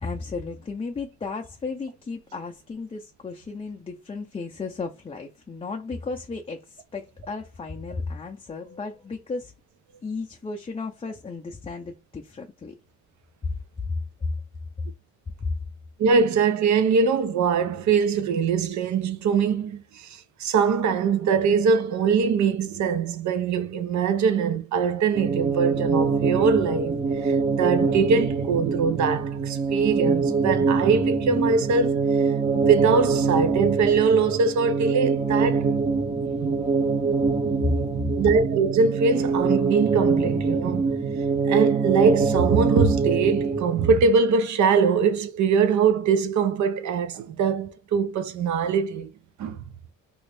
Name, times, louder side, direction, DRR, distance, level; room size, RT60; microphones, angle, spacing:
voice 1, 0.0-9.5 10.0-12.8 13.4-14.3 15.4-15.5 37.6-37.8 38.0-38.1, left 3 dB, 20° left, 0.4 m, -33 dB
voice 2, 16.0-35.7 36.4-36.6 38.2-41.0 41.3-49.1 49.4-49.7, right 5 dB, 70° right, 0.7 m, -22 dB
sound 1, 25.1-44.0, right 4 dB, 20° right, 0.7 m, -24 dB
3.0 x 2.6 x 3.3 m
cardioid pair, 90°, 30 cm